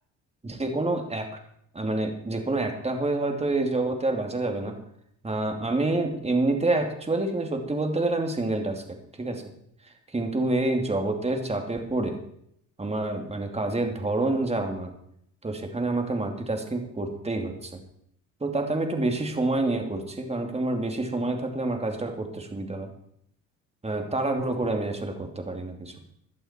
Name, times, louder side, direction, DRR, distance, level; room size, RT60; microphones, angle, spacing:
voice 1, 0.4-1.3 1.7-4.8 5.2-9.4 9.8-12.2 12.8-14.9 15.4-17.8 18.4-22.9 23.8-25.9, right 2 dB, 20° right, 4 dB, 2.9 m, -28 dB
17.0 x 11.5 x 4.6 m, 0.72 s
supercardioid pair, 80°, 34 cm